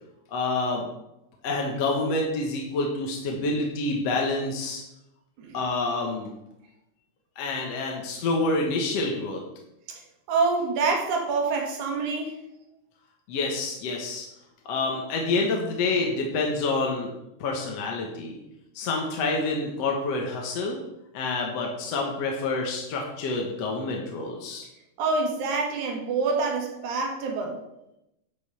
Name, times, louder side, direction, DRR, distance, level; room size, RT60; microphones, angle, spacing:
voice 1, 0.3-0.8 1.4-4.8 5.5-6.3 7.4-9.4 13.3-14.3 14.7-17.1 17.4-18.4 18.8-20.8 21.1-24.7, left 3 dB, 60° left, 0 dB, 2.3 m, -27 dB
voice 2, 10.3-12.4 25.0-27.6, right 4 dB, 80° right, 1 dB, 3.0 m, -26 dB
11.0 x 5.5 x 6.9 m, 0.88 s
omnidirectional pair, 3.4 m